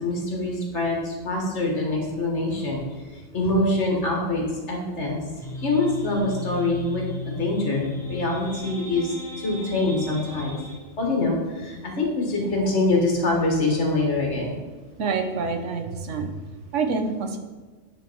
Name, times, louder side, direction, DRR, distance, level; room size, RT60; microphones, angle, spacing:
voice 1, 0.0-2.8 3.1-10.6 11.0-14.5, left 2 dB, 65° left, 0 dB, 1.7 m, -25 dB
sound 1, 5.4-10.8, left 3 dB, ahead, 0.9 m, -35 dB
voice 2, 15.0-16.3 16.7-17.4, right 4 dB, 75° right, 5 dB, 1.1 m, -26 dB
9.2 x 3.4 x 4.5 m, 1.3 s
omnidirectional pair, 1.3 m